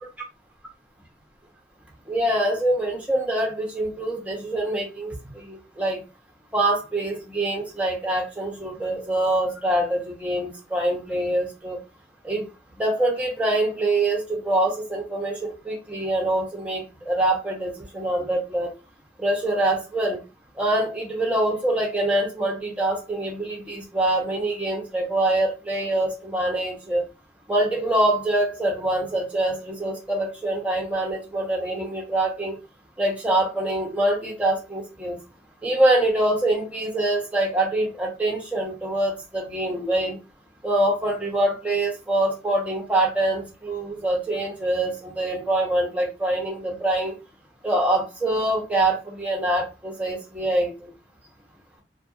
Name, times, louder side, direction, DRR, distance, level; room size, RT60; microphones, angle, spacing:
voice 1, 2.1-6.0 6.5-11.8 12.2-12.5 12.8-18.7 19.2-20.2 20.6-27.0 27.5-32.5 33.0-35.2 35.6-40.2 40.6-47.1 47.6-50.9, right 1 dB, 10° right, -1 dB, 0.8 m, -24 dB
2.6 x 2.5 x 2.4 m, 0.28 s
head